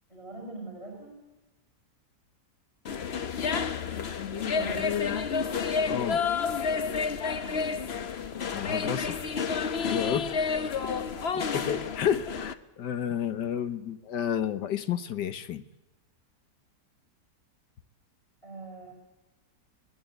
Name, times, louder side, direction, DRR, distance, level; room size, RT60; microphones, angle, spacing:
voice 1, 0.1-1.2 4.2-5.4 7.2-8.0 11.0-11.3 18.4-18.9, right 3 dB, 20° left, -1 dB, 6.0 m, -44 dB
sound 1, 2.9-12.5, left 6 dB, 45° left, 1.0 m, -30 dB
voice 2, 5.9-6.2 8.5-9.2 9.8-10.3 11.3-15.6, left 9 dB, 85° left, 12 dB, 1.7 m, -31 dB
23.5 x 18.5 x 8.0 m, 1.0 s
omnidirectional pair, 1.8 m